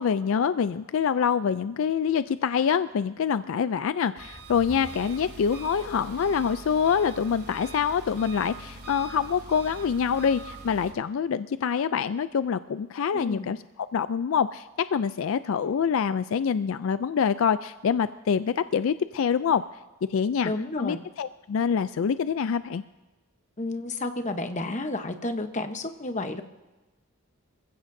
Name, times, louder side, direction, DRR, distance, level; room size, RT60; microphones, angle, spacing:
voice 1, 0.0-19.6 20.1-20.5 20.8-22.8, left 7 dB, 65° left, 13 dB, 0.4 m, -26 dB
Engine, 4.2-10.9, right 1 dB, 50° right, 2.8 m, -43 dB
voice 2, 13.1-13.5 20.4-21.0 23.6-26.4, left 2 dB, 35° left, 7 dB, 0.9 m, -31 dB
25.5 x 15.5 x 2.7 m, 1.2 s
head